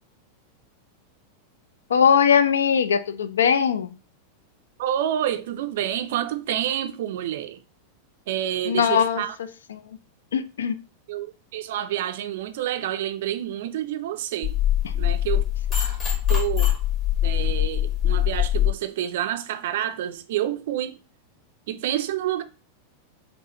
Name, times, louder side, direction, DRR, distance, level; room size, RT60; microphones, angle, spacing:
voice 1, 1.9-3.9 8.7-9.2 9.7-9.8 10.3-10.8, left 7 dB, 65° left, 0.3 m, -20 dB
voice 2, 4.8-7.6 8.3-9.3 11.1-14.6 14.9-15.5 16.3-16.7 17.2-21.0 21.7-22.4, right 11 dB, 55° right, 0.4 m, -28 dB
sound 1, 14.4-18.7, left 12 dB, 30° left, 1.6 m, -23 dB
4.7 x 2.4 x 2.8 m
figure-of-eight pair, 90°, 0 cm